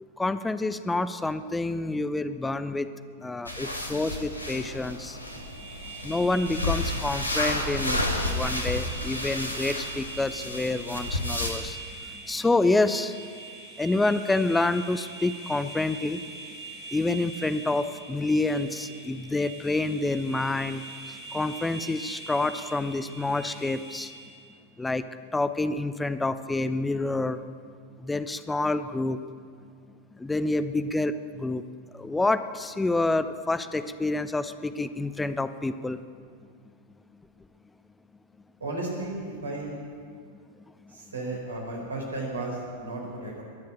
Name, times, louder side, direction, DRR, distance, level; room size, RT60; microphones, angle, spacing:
voice 1, 0.2-2.9 3.2-5.2 6.0-11.8 12.3-13.2 13.8-16.2 16.9-20.8 21.3-24.1 24.8-25.0 25.3-27.4 28.0-29.2 30.2-31.6 32.0-36.0, left 2 dB, 10° left, 12 dB, 0.7 m, -28 dB
sound 1, 3.5-11.5, left 1 dB, 85° left, 2.0 m, -31 dB
sound 2, 5.2-24.4, right 3 dB, 55° right, 4.3 m, -43 dB
voice 2, 38.6-39.8 40.9-43.4, right 2 dB, 70° right, -1 dB, 4.4 m, -34 dB
21.5 x 7.7 x 8.7 m, 2.1 s
figure-of-eight pair, 90°, 0 cm